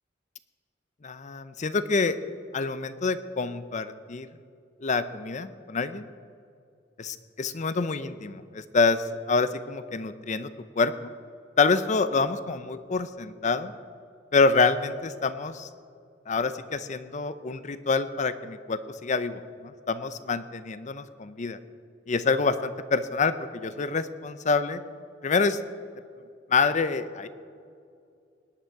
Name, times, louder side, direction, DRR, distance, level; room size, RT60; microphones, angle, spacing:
voice 1, 1.0-2.2 2.5-4.3 4.8-6.1 7.0-10.5 10.8-11.1 11.6-13.7 14.3-15.7 16.3-21.6 22.1-24.8 25.2-25.6 26.5-27.3, left 4 dB, 40° left, 13 dB, 0.6 m, -27 dB
18.5 x 10.5 x 4.7 m, 2.4 s
head